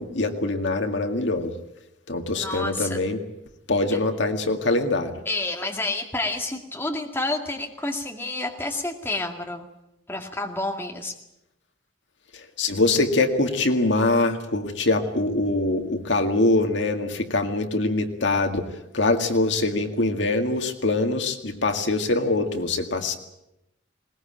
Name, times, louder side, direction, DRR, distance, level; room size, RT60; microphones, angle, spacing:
voice 1, 0.0-1.5 2.1-3.2 3.7-5.1 12.3-18.7 18.9-23.2, left 2 dB, 70° left, 5 dB, 2.0 m, -23 dB
voice 2, 2.3-3.0 5.3-9.7 10.1-11.1, left 2 dB, 10° left, 2 dB, 2.1 m, -29 dB
21.0 x 20.0 x 8.8 m, 0.88 s
head